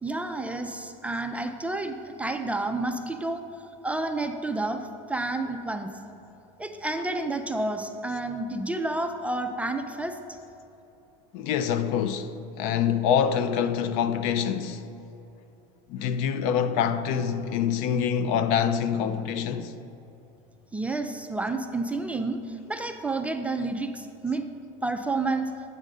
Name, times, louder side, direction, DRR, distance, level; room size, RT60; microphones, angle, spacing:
voice 1, 0.0-3.4 3.8-4.8 5.1-5.9 6.6-10.2 20.7-24.5 24.8-25.5, right 2 dB, 10° right, 0.3 m, -30 dB
voice 2, 11.3-12.3 12.6-14.9 15.9-19.7, left 8 dB, 60° left, 0.5 m, -25 dB
8.3 x 5.3 x 4.9 m
supercardioid pair, 130°, 17 cm